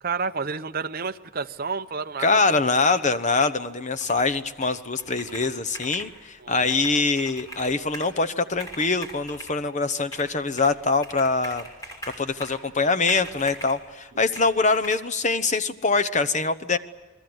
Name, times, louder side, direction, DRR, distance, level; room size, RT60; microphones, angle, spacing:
voice 1, 0.0-2.6 6.4-6.7, right 5 dB, 45° right, 8 dB, 0.8 m, -30 dB
voice 2, 2.2-11.7 12.2-16.8, left 3 dB, 35° left, 12 dB, 0.9 m, -24 dB
Computer keyboard, 3.9-4.4 4.6-6.1 6.5-8.2 8.5-9.6 10.1-10.8 11.0-12.7 13.1-13.8 14.4-14.9, right 1 dB, 15° left, 6.0 m, -41 dB
28.5 x 21.0 x 8.0 m, 1.2 s
head